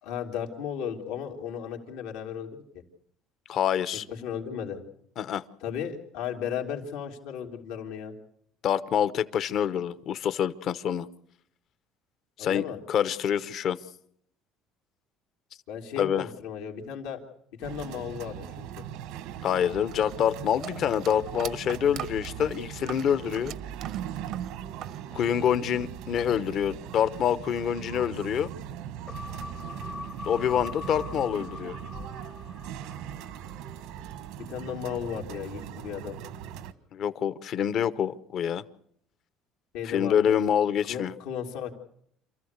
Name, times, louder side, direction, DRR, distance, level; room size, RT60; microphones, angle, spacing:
voice 1, 0.0-2.5 4.1-4.8 5.6-8.1 12.4-12.8 15.7-17.2 17.6-18.8 34.5-36.2 39.7-40.4 40.9-41.7, left 8 dB, 85° left, 2 dB, 3.1 m, -35 dB
voice 2, 3.5-4.0 5.2-5.4 8.6-11.1 12.4-13.8 16.0-16.3 19.4-23.5 25.1-28.5 30.2-31.8 36.9-38.6 39.8-41.1, left 9 dB, 55° left, 15 dB, 1.0 m, -26 dB
sound 1, 17.6-36.7, right 10 dB, 80° right, 1.4 m, -40 dB
sound 2, 19.9-25.0 25.3-26.1, right 11 dB, 60° right, 0.8 m, -42 dB
sound 3, 29.1-33.7 34.1-34.2, left 4 dB, 30° left, 0.8 m, -42 dB
27.5 x 14.5 x 8.1 m, 0.69 s
cardioid pair, 115°, 0 cm